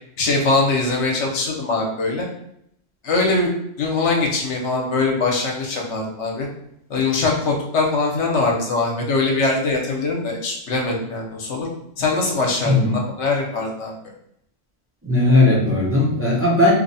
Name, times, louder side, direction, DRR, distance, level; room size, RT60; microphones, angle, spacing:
voice 1, 0.2-2.3 3.0-3.5 3.8-6.5 6.9-11.7 12.0-13.9, left 3 dB, 65° left, 0 dB, 1.1 m, -22 dB
voice 2, 15.0-16.7, left 2 dB, 15° right, -5 dB, 0.6 m, -17 dB
3.1 x 2.3 x 4.0 m, 0.73 s
omnidirectional pair, 1.3 m